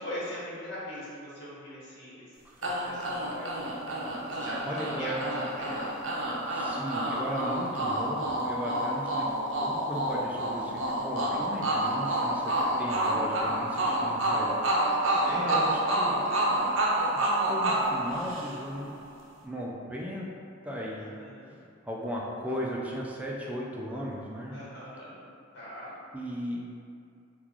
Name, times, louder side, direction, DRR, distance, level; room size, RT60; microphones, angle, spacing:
voice 1, 0.0-2.3 2.6-3.6 4.3-5.9 8.8-9.0 15.0-15.6 21.0-21.6 24.5-25.2 25.5-25.9, equal, 60° left, -9 dB, 1.1 m, -41 dB
sound 1, 2.6-18.8, right 1 dB, 75° right, 0.5 m, -29 dB
voice 2, 4.7-5.3 6.5-9.3 9.6-15.0 15.3-16.5 17.1-18.9 19.4-20.3 20.6-21.1 21.8-24.6 26.1-26.6, equal, 10° right, -4 dB, 0.3 m, -36 dB
3.6 x 2.4 x 3.0 m, 2.4 s
head